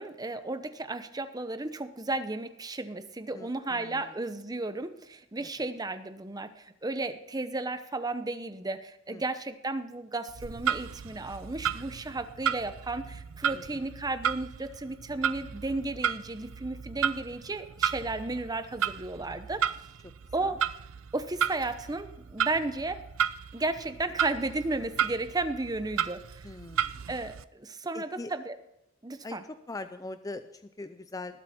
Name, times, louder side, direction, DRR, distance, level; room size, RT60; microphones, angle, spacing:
voice 1, 0.0-19.7 20.3-20.6 21.1-23.0 23.5-26.5 27.1-28.6 29.0-29.4, right 2 dB, 20° right, 10 dB, 0.8 m, -34 dB
voice 2, 3.3-4.1 5.4-5.7 9.1-9.2 13.5-13.8 20.4-20.6 26.4-26.9 27.9-28.3 29.2-29.4 29.7-31.4, left 2 dB, 15° left, 10 dB, 0.5 m, -42 dB
Clock, 10.3-27.4, right 8 dB, 80° right, 0.5 m, -33 dB
19.5 x 8.0 x 4.2 m, 0.85 s
head